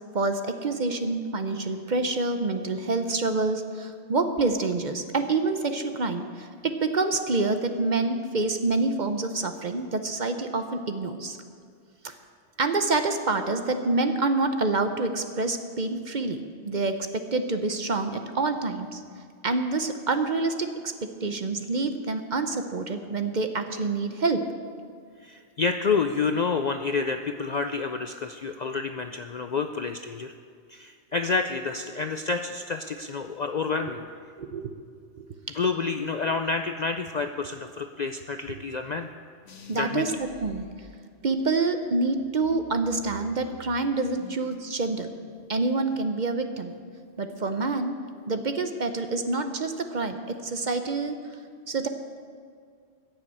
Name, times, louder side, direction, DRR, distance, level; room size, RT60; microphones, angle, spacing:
voice 1, 0.1-11.4 12.0-12.1 12.6-19.0 19.4-20.7 21.0-24.4 34.4-34.8 35.2-35.3 39.7-40.6 41.2-45.1 45.5-46.7 47.2-47.9 48.3-51.2 51.7-51.9, right 3 dB, 45° right, 7 dB, 0.8 m, -27 dB
voice 2, 25.2-30.3 30.7-34.0 35.5-39.1 39.7-40.2, left 4 dB, 55° left, 7 dB, 0.5 m, -29 dB
sound 1, 39.5-41.5 42.0-44.5 44.8-45.4, left 3 dB, 90° left, 1.6 m, -47 dB
15.0 x 6.9 x 8.6 m, 2.1 s
omnidirectional pair, 1.2 m